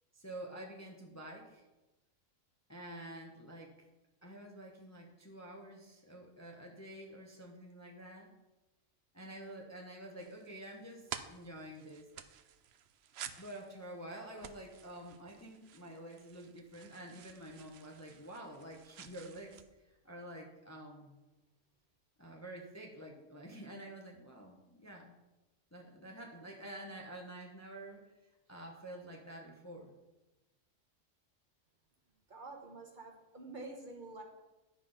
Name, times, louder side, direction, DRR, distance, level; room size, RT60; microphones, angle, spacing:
voice 1, 0.1-1.6 2.7-3.9 4.2-8.3 9.1-12.1 13.4-19.6 20.0-21.2 22.2-25.1 25.7-28.0 28.5-29.9, right 1 dB, 15° left, 1 dB, 0.9 m, -49 dB
sound 1, 10.2-19.6, right 9 dB, 65° right, 0.8 m, -51 dB
voice 2, 32.3-34.2, right 2 dB, 40° right, 1 dB, 1.2 m, -48 dB
10.5 x 5.2 x 5.5 m, 1.0 s
omnidirectional pair, 1.4 m